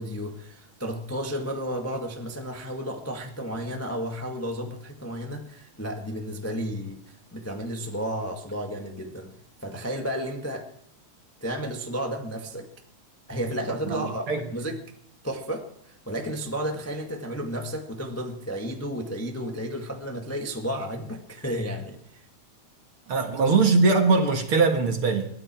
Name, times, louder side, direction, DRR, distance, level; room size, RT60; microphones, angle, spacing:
voice 1, 0.0-9.3 9.6-10.7 11.4-12.7 13.3-14.8 15.2-22.3 23.4-23.6, equal, 10° left, 0.9 m, -32 dB
voice 2, 13.9-14.5 23.1-25.3, right 4 dB, 50° right, 2.1 m, -21 dB
22.0 x 14.5 x 4.5 m
omnidirectional pair, 3.5 m